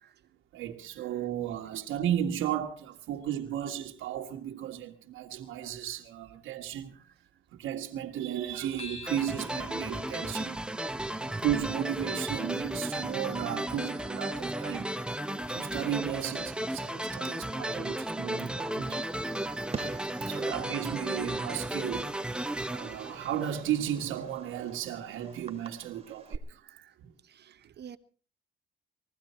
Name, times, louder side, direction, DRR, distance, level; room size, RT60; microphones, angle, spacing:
voice 1, 0.5-6.9 7.5-10.6 11.2-14.9 15.3-19.0 20.2-26.6 27.0-27.1, right 10 dB, 85° right, 1.7 m, -34 dB
sound 1, 8.8-13.5, left 4 dB, 30° left, 3.3 m, -51 dB
sound 2, 9.1-23.9, right 1 dB, 5° right, 0.9 m, -34 dB
Fireworks, 18.4-26.4, right 5 dB, 30° right, 2.0 m, -47 dB
voice 2, 27.4-28.0, right 8 dB, 55° right, 1.2 m, -48 dB
21.0 x 15.0 x 4.4 m
cardioid pair, 90°, 20 cm